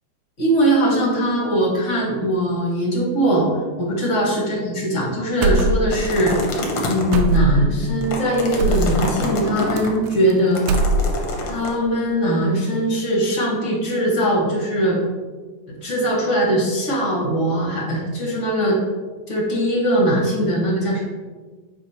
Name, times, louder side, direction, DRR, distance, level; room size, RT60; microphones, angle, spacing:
voice 1, 0.4-3.4 3.8-6.3 6.9-10.7 11.5-15.0 15.7-18.8 19.3-21.0, right 1 dB, 50° left, -3 dB, 0.8 m, -20 dB
sound 1, 5.4-6.1 6.3-6.5 7.1-7.8 8.6-8.9 9.8-10.3 10.6-11.3, right 2 dB, 80° right, 1.4 m, -20 dB
sound 2, 5.9-7.2 7.8-9.9 10.6-11.7, left 1 dB, 70° left, 1.1 m, -26 dB
7.6 x 2.8 x 5.6 m, 1.4 s
omnidirectional pair, 3.4 m